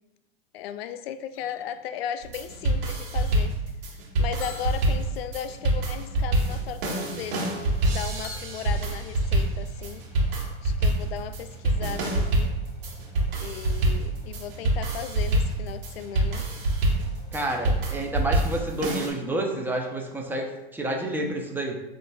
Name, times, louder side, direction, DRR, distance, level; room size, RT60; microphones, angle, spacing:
voice 1, 0.5-3.5 4.2-7.6 7.8-10.0 10.6-12.5 13.4-16.5, left 9 dB, 80° left, 11 dB, 0.4 m, -36 dB
sound 1, 1.3-3.3 4.4-6.1 8.2-9.7, left 6 dB, 60° left, 0.8 m, -48 dB
sound 2, 2.2-19.1, right 1 dB, 70° right, 1.2 m, -26 dB
sound 3, 7.1-17.7, right 3 dB, 15° left, 1.4 m, -47 dB
voice 2, 17.3-21.8, right 1 dB, 5° right, 0 dB, 0.5 m, -29 dB
7.7 x 2.6 x 2.2 m, 0.96 s
hypercardioid pair, 120°, 30 cm